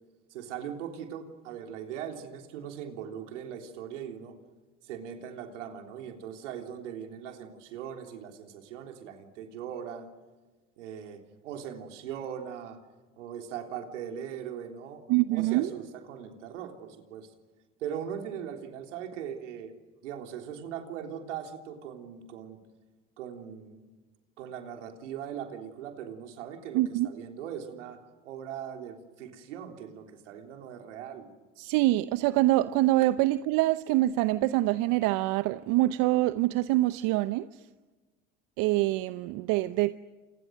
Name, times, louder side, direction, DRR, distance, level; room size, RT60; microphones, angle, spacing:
voice 1, 0.3-4.4 4.8-10.1 10.8-12.8 13.2-15.0 15.3-17.3 17.8-19.7 20.0-22.6 23.2-23.8 24.4-31.3, right 8 dB, 85° right, 3.6 m, -40 dB
voice 2, 15.1-15.7 26.7-27.1 31.6-37.5 38.6-39.9, right 17 dB, 65° right, 0.9 m, -25 dB
29.5 x 28.0 x 6.3 m
hypercardioid pair, 70°, 35 cm